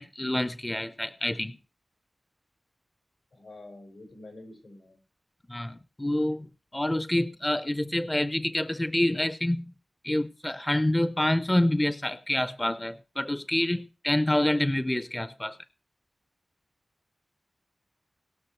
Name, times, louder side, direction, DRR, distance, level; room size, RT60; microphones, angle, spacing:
voice 1, 0.0-1.6 5.5-6.5 6.7-9.7 10.0-15.6, left 1 dB, 15° left, 0.5 m, -27 dB
voice 2, 3.3-5.0, left 2 dB, 85° left, 5.9 m, -47 dB
19.5 x 6.6 x 4.5 m
wide cardioid pair, 90°, 0 cm